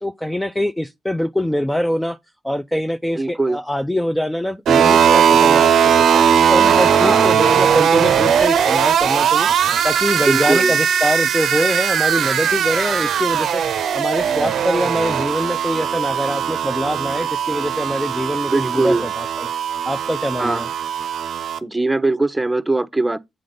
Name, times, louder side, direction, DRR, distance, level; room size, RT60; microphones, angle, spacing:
voice 1, 0.0-2.2 2.4-6.2 6.5-9.5 9.8-13.6 13.9-19.5 19.9-20.7, equal, 5° left, 0.4 m, -23 dB
voice 2, 3.2-3.6 6.9-7.3 10.2-10.8 18.5-19.1 20.4-20.6 21.6-23.2, right 2 dB, 15° right, 0.8 m, -20 dB
sound 1, 4.7-21.6, right 8 dB, 65° right, 0.6 m, -18 dB
7.8 x 3.8 x 5.1 m
hypercardioid pair, 45°, 0 cm